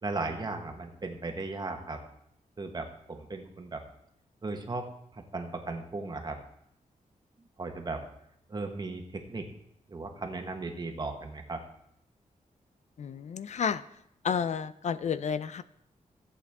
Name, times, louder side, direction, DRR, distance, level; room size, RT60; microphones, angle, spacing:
voice 1, 0.0-2.0 2.6-3.8 4.4-4.9 5.1-6.4 7.6-8.0 8.5-9.5 9.9-11.6, right 3 dB, 30° right, 4 dB, 1.3 m, -36 dB
voice 2, 13.0-13.8 14.2-15.6, left 7 dB, 55° left, 15 dB, 0.4 m, -31 dB
14.5 x 8.1 x 3.6 m, 0.75 s
wide cardioid pair, 150°, 14 cm